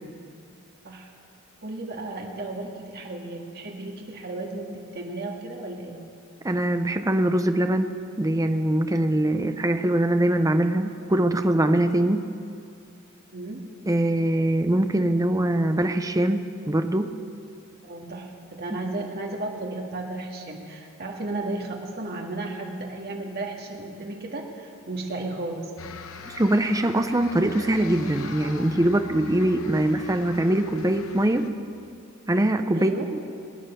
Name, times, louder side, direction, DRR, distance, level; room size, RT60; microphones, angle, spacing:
voice 1, 1.6-6.0 13.3-13.7 17.8-25.7 29.7-29.8 32.7-33.1, right 2 dB, 50° right, 0 dB, 1.8 m, -34 dB
voice 2, 6.4-7.9 8.2-12.3 13.9-17.1 26.2-31.5 32.3-33.2, right 1 dB, 15° right, 7 dB, 0.6 m, -23 dB
sound 1, 25.8-31.5, left 4 dB, 80° left, 0.9 m, -41 dB
20.5 x 9.5 x 6.8 m, 2.4 s
head